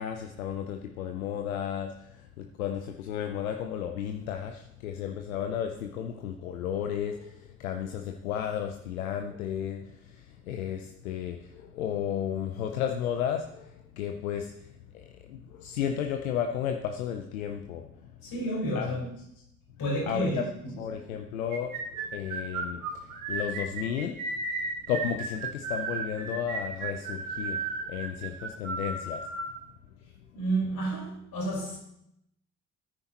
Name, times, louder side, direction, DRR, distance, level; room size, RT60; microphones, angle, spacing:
voice 1, 0.0-17.9 18.7-18.9 20.1-20.5 20.8-24.2 24.9-29.3, left 9 dB, 90° left, 0.7 m, -33 dB
voice 2, 18.2-19.2 19.8-20.8 30.3-31.8, right 1 dB, 60° left, 4.7 m, -31 dB
sound 1, 21.5-29.5, right 4 dB, 85° right, 1.4 m, -34 dB
13.5 x 9.9 x 3.0 m
hypercardioid pair, 45°, 41 cm